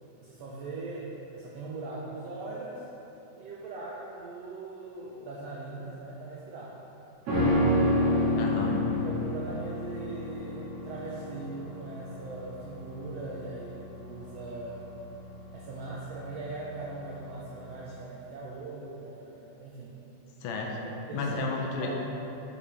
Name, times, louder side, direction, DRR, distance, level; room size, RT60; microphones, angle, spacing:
voice 1, 0.2-2.8 3.4-6.8 7.8-8.5 8.9-14.8 15.5-19.9 20.8-21.4 21.8-22.0, right 3 dB, 80° right, -5 dB, 1.5 m, -40 dB
sound 1, 7.3-16.7 17.0-17.1, left 1 dB, 50° right, 2.5 m, -29 dB
voice 2, 8.4-8.8 20.4-20.8 21.1-22.0, left 2 dB, 80° left, 0 dB, 2.1 m, -31 dB
7.5 x 6.9 x 3.3 m, 3.0 s
omnidirectional pair, 3.7 m